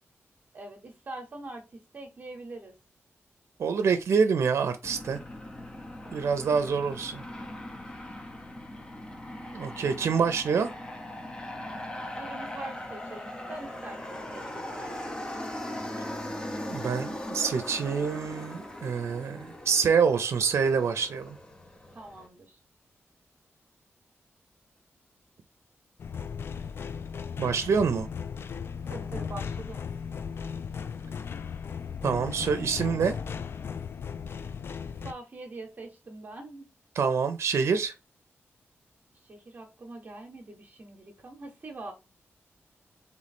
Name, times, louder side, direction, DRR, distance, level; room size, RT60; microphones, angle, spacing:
voice 1, 0.5-2.7 6.0-6.3 12.1-14.4 14.7-15.1 21.9-22.6 28.9-29.8 35.0-36.7 39.1-41.9, right 2 dB, 40° right, 0.9 m, -43 dB
voice 2, 3.6-5.2 6.1-7.2 9.5-10.7 16.7-21.4 27.4-28.1 32.0-33.2 37.0-37.9, right 6 dB, 70° right, 0.5 m, -26 dB
Aircraft, 4.8-22.3, left 1 dB, 20° left, 0.7 m, -39 dB
sound 1, 26.0-35.1, left 6 dB, 55° left, 0.3 m, -36 dB
3.5 x 3.1 x 4.1 m
wide cardioid pair, 145°, 5 cm